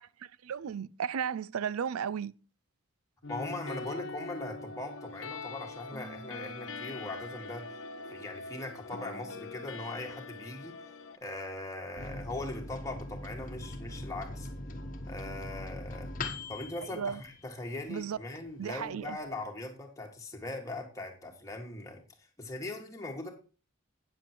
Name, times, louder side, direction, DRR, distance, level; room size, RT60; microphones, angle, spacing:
voice 1, 0.0-2.4 16.8-17.2 17.9-18.2 18.6-19.2, right 7 dB, 80° right, 0.4 m, -35 dB
sound 1, 3.2-11.2, left 3 dB, 60° left, 1.1 m, -43 dB
voice 2, 3.3-7.7 8.1-10.8 11.2-14.5 15.1-16.1 16.5-22.0 22.4-23.3, left 2 dB, 15° left, 1.8 m, -40 dB
Microwave oven, 12.0-18.1 18.5-18.6 18.8-19.4, left 2 dB, 40° left, 1.2 m, -41 dB
9.3 x 7.5 x 4.5 m
head